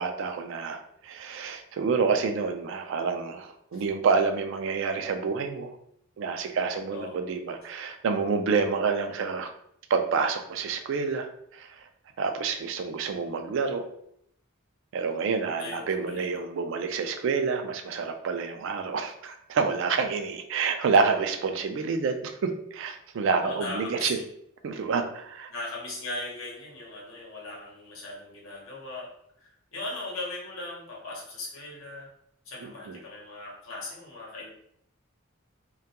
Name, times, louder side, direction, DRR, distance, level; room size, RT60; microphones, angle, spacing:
voice 1, 0.0-5.7 6.2-9.5 9.9-11.8 12.2-13.8 14.9-24.2 24.6-25.5 32.6-33.0, right 5 dB, 60° right, 6 dB, 0.3 m, -28 dB
voice 2, 15.6-16.3 23.4-24.2 25.5-29.1 29.4-32.1 32.4-34.5, left 2 dB, 70° left, -4 dB, 0.9 m, -38 dB
2.2 x 2.2 x 2.8 m, 0.71 s
head